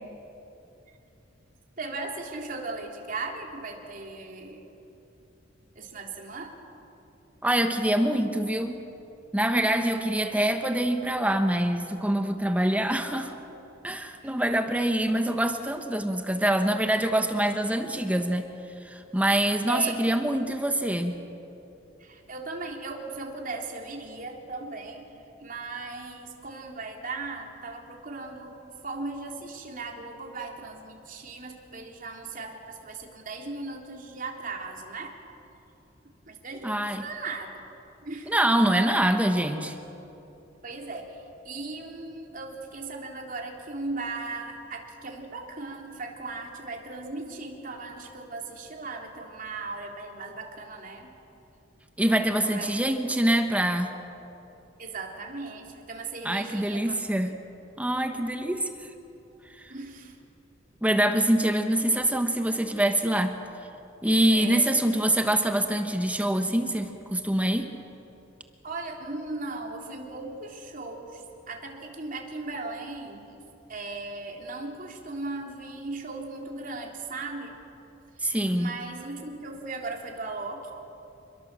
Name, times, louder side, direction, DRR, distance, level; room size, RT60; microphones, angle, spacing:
voice 1, 1.8-4.6 5.7-6.6 14.2-14.3 19.7-20.0 22.0-25.0 25.4-35.1 36.3-37.6 38.0-38.3 40.6-51.1 52.4-52.8 54.8-57.0 59.7-60.1 64.3-64.6 68.6-73.4 73.7-77.5 78.2-78.3 78.5-80.7, right 3 dB, 45° right, 1 dB, 3.4 m, -37 dB
voice 2, 7.4-8.8 9.3-13.4 13.8-18.5 18.8-21.2 36.6-37.0 38.3-39.8 52.0-53.9 56.2-57.4 57.8-58.9 59.6-59.7 60.8-63.4 64.0-67.7 78.2-78.8, right 1 dB, 10° right, 6 dB, 1.2 m, -25 dB
28.0 x 22.0 x 7.6 m, 2.9 s
head